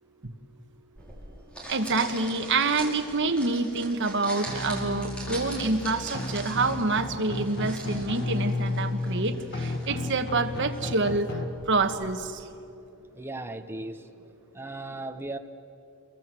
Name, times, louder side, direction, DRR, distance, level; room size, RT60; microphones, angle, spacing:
sound 1, 1.0-12.3, right 1 dB, 5° left, 5.0 m, -43 dB
voice 1, 1.7-11.4 11.7-12.5, right 3 dB, 55° right, 7 dB, 1.4 m, -27 dB
sound 2, 4.5-11.5, left 2 dB, 50° left, 2.0 m, -32 dB
voice 2, 13.1-14.1 14.5-15.4, right 2 dB, 10° right, 7 dB, 0.9 m, -36 dB
28.5 x 23.0 x 7.7 m, 2.7 s
head